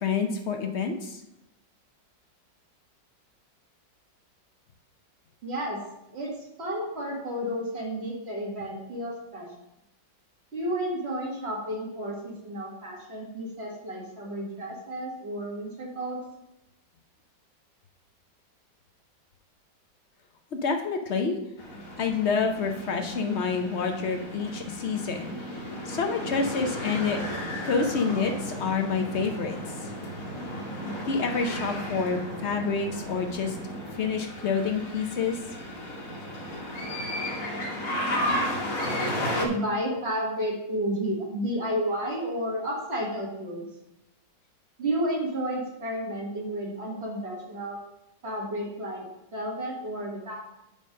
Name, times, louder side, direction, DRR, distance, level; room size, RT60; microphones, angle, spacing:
voice 1, 0.0-1.2 20.5-21.4 22.0-27.2 27.6-29.9 31.0-33.6 33.9-35.4, left 5 dB, 70° left, 4 dB, 0.6 m, -28 dB
voice 2, 5.4-5.8 6.1-6.3 6.6-9.5 10.5-16.2 39.1-43.6 44.8-47.8 48.2-49.1 49.3-50.4, equal, 35° right, -2 dB, 2.1 m, -31 dB
sound 1, 21.6-39.5, equal, 50° left, 1.4 m, -34 dB
5.4 x 5.3 x 6.4 m, 0.86 s
omnidirectional pair, 2.0 m